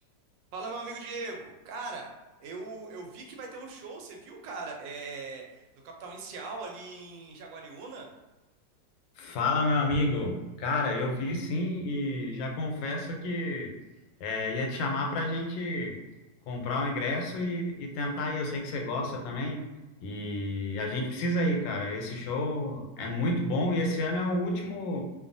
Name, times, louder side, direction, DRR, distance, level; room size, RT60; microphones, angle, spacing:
voice 1, 0.5-2.1 2.4-8.1, right 3 dB, 80° right, 1 dB, 1.3 m, -40 dB
voice 2, 9.2-13.7 14.2-16.0 16.5-19.7 20.0-25.0, left 2 dB, 85° left, 1 dB, 1.3 m, -30 dB
2.9 x 2.3 x 2.5 m, 1.1 s
omnidirectional pair, 2.0 m